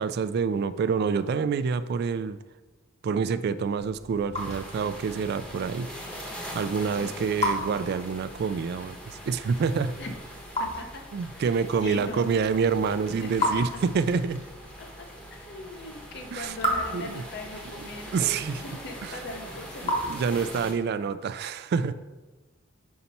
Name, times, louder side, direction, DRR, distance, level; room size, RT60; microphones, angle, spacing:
voice 1, 0.0-2.4 3.0-5.9 6.5-10.0 11.1-14.4 16.3-16.5 16.9-17.1 18.1-18.6 19.0-19.2 19.8-21.9, right 5 dB, 50° right, 13 dB, 0.3 m, -27 dB
Raindrop / Drip, 3.6-20.8, left 1 dB, 35° left, 1.3 m, -36 dB
sound 1, 4.3-20.7, equal, 5° left, 0.9 m, -43 dB
voice 2, 10.6-11.0 11.3-12.6 13.2-13.6 14.8-14.9 15.3-20.0, left 2 dB, 60° left, 4 dB, 0.9 m, -40 dB
5.8 x 5.3 x 4.1 m, 1.2 s
head